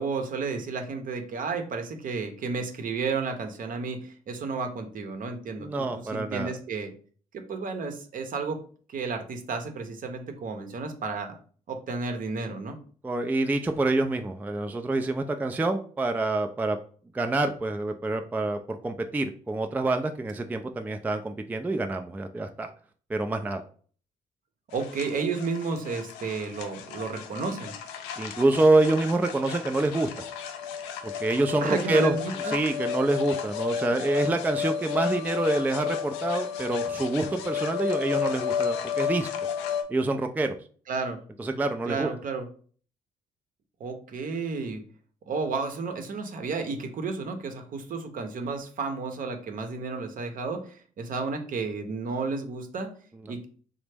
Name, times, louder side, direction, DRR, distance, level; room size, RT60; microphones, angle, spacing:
voice 1, 0.0-5.7 6.1-6.9 7.3-8.6 8.9-11.4 11.7-12.8 24.7-27.7 31.6-32.6 40.9-41.2 41.8-42.5 43.8-44.8 45.3-52.9 53.3-53.5, right 4 dB, 55° right, 5 dB, 0.7 m, -32 dB
voice 2, 5.6-6.5 13.0-16.8 17.1-22.7 23.1-23.6 28.2-30.3 31.0-32.2 32.5-39.3 39.9-40.6 41.4-42.1, right 2 dB, 10° right, 6 dB, 0.3 m, -26 dB
sound 1, 24.7-39.8, left 7 dB, 90° left, 0.4 m, -32 dB
3.2 x 2.0 x 3.3 m, 0.43 s
supercardioid pair, 55°, 17 cm